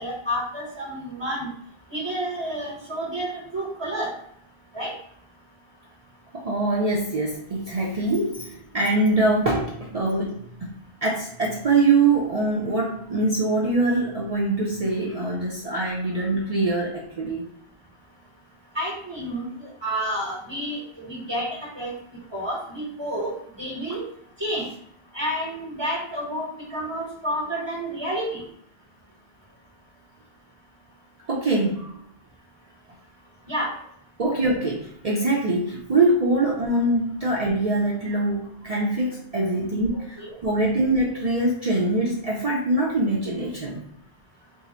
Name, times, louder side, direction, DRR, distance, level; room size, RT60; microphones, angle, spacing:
voice 1, 0.0-1.5 1.9-4.1 4.7-4.9 18.7-21.5 21.7-21.9 22.3-24.0 24.4-24.7 25.1-28.4 33.5-33.7 39.9-40.3, equal, 25° right, -5 dB, 1.1 m, -30 dB
voice 2, 6.3-10.7 11.0-17.4 31.3-31.9 34.2-43.8, right 2 dB, 45° right, -4 dB, 0.6 m, -23 dB
3.6 x 2.0 x 4.2 m, 0.69 s
omnidirectional pair, 1.1 m